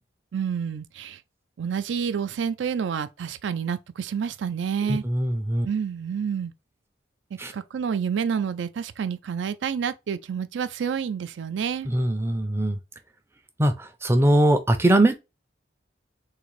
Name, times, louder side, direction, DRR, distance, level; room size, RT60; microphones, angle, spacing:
voice 1, 0.3-1.2 1.6-5.0 5.6-6.5 7.5-11.9, right 7 dB, 75° right, 0.4 m, -28 dB
voice 2, 4.9-5.7 7.4-7.5 11.9-12.8 13.6-15.1, right 1 dB, 15° right, 0.4 m, -21 dB
3.7 x 2.6 x 3.1 m
head